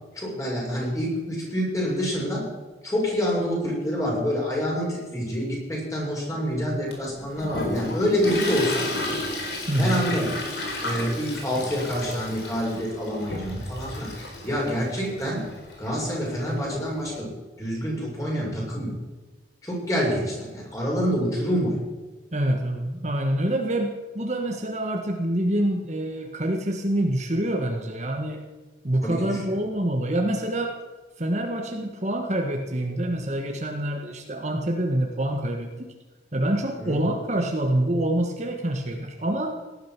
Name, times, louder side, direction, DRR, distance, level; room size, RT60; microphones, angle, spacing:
voice 1, 0.1-2.5 2.8-8.9 9.8-10.3 10.8-15.5 15.8-17.3 17.6-19.0 19.6-21.8 29.0-29.4 36.8-37.0, equal, 20° left, -3 dB, 6.7 m, -27 dB
Toilet flush, 6.9-17.1, left 1 dB, 70° left, 4.4 m, -33 dB
voice 2, 9.7-10.0 22.3-28.4 28.8-30.7 31.2-35.9 36.3-39.6, right 1 dB, 40° right, 2 dB, 1.6 m, -26 dB
18.5 x 11.5 x 6.1 m, 1.3 s
head